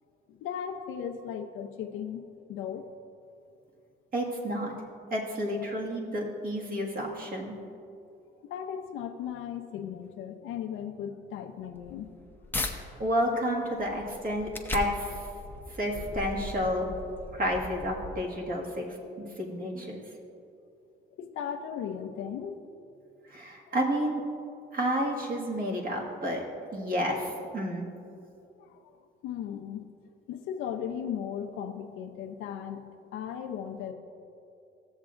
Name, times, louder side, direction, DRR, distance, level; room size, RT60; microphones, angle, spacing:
voice 1, 0.3-2.9 8.5-12.1 12.5-12.6 15.9-16.3 21.2-22.6 28.6-28.8 29.2-29.9 30.3-32.8 33.1-33.9, left 8 dB, 90° left, 6 dB, 0.7 m, -37 dB
voice 2, 4.1-4.7 5.1-7.6 12.6-15.3 15.8-16.9 17.3-18.8 19.2-20.0 23.3-24.2 24.7-26.4 26.7-27.9, equal, 45° right, -2 dB, 1.8 m, -30 dB
sound 1, 11.7-12.7 13.3-18.5, left 2 dB, 10° left, 0.8 m, -39 dB
15.0 x 7.3 x 2.5 m, 2.6 s
cardioid pair, 90°, 20 cm